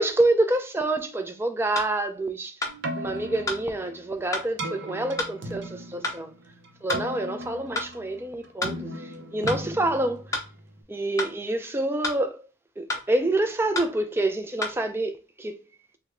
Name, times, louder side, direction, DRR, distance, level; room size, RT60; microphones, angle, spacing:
voice 1, 0.0-2.6 3.0-6.3 6.8-10.2 10.9-12.5 12.8-15.6, right 2 dB, 10° right, 0.3 m, -27 dB
sound 1, 1.7-1.9 2.6-2.8 3.5-3.6 4.3-4.5 5.2-5.3 6.0-6.2 6.9-7.1 7.7-7.9 8.6-8.8 9.5-9.6 10.3-10.5 11.2-11.3 12.0-12.2 12.9-13.1 13.7-13.9 14.6-14.8, left 2 dB, 15° left, 0.6 m, -29 dB
Keyboard (musical), 2.7-10.8, right 1 dB, 75° right, 0.7 m, -37 dB
3.3 x 2.1 x 3.5 m
head